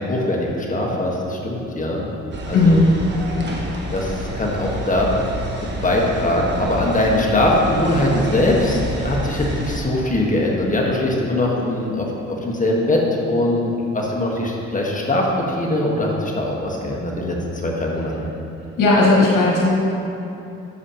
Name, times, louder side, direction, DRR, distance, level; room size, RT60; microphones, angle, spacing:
voice 1, 0.0-2.1 2.5-2.8 3.9-5.1 5.8-18.1, left 1 dB, 25° left, -2 dB, 1.5 m, -21 dB
sound 1, 2.3-9.8, equal, 35° right, 1.3 m, -29 dB
voice 2, 2.5-2.9 18.8-19.7, left 2 dB, 85° left, -6 dB, 1.8 m, -15 dB
10.5 x 7.0 x 3.0 m, 2.9 s
cardioid pair, 90°, 30 cm